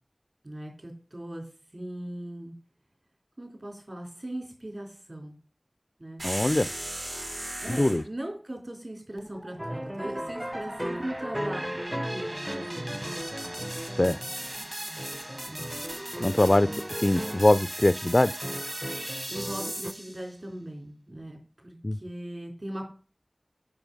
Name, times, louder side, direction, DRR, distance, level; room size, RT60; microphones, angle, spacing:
voice 1, 0.4-1.4 1.7-2.5 3.4-5.4 6.0-6.2 7.6-12.3 12.5-13.2 15.5-15.7 19.3-21.4 21.6-22.9, right 1 dB, 55° right, 2 dB, 3.5 m, -39 dB
voice 2, 6.2-6.7 7.7-8.0 14.0-14.2 16.2-16.7 17.0-18.3 21.8-22.0, left 1 dB, 40° left, 14 dB, 0.3 m, -22 dB
sound 1, 6.2-8.0, right 1 dB, 80° right, 3.7 m, -35 dB
sound 2, 9.2-20.3, right 1 dB, 30° right, 1.0 m, -39 dB
sound 3, 9.6-14.6 15.0-17.7 18.4-19.9, equal, 15° right, 0.5 m, -36 dB
9.8 x 5.5 x 5.3 m, 0.39 s
wide cardioid pair, 40°, 0 cm